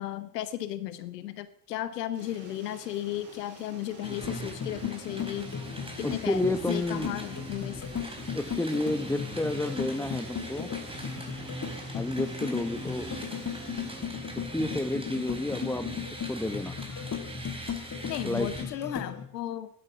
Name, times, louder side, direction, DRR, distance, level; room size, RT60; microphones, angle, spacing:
voice 1, 0.0-5.5 6.0-7.8 18.1-19.7, left 13 dB, 80° left, 14 dB, 0.9 m, -35 dB
sound 1, 2.1-14.0, right 3 dB, 75° right, 4.3 m, -50 dB
sound 2, 4.0-18.6, right 1 dB, 10° right, 4.1 m, -41 dB
sound 3, 4.2-19.2, left 8 dB, 35° left, 2.2 m, -37 dB
voice 2, 6.0-7.2 8.3-10.7 11.9-13.1 14.4-15.9 16.3-16.8 18.2-18.5, left 1 dB, 5° left, 11 dB, 1.4 m, -30 dB
11.0 x 10.0 x 7.5 m, 0.73 s
figure-of-eight pair, 45°, 48 cm